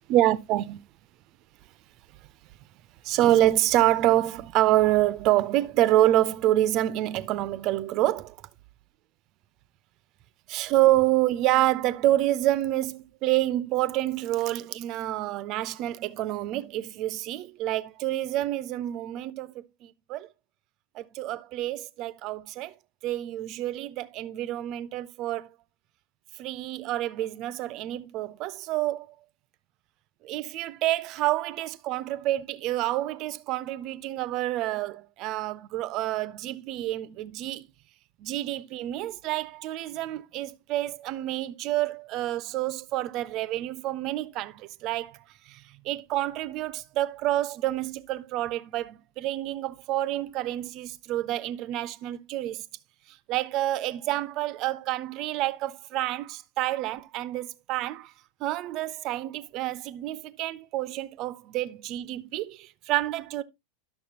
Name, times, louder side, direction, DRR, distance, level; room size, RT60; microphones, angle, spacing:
voice 1, 0.1-0.8 3.0-8.4 10.5-20.3 20.9-22.7 23.0-25.5 26.4-29.1 30.2-37.7 38.2-45.2 45.5-52.7 53.3-58.1 58.4-63.4, right 14 dB, 40° right, 0.5 m, -27 dB
10.5 x 6.6 x 2.8 m
figure-of-eight pair, 90°, 0 cm